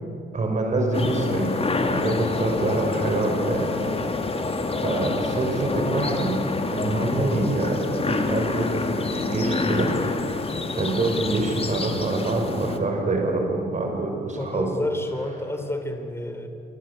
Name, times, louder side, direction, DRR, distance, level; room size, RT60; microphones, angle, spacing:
voice 1, 0.3-3.7 4.8-6.4 6.7-9.9 10.2-10.4 10.7-14.7, right 2 dB, 35° right, 2 dB, 5.8 m, -26 dB
sound 1, 0.9-12.8, left 3 dB, 30° left, 2.9 m, -27 dB
voice 2, 14.4-16.5, left 1 dB, 10° left, 6 dB, 4.4 m, -30 dB
27.5 x 24.5 x 8.5 m, 2.6 s
cardioid pair, 90°, 20 cm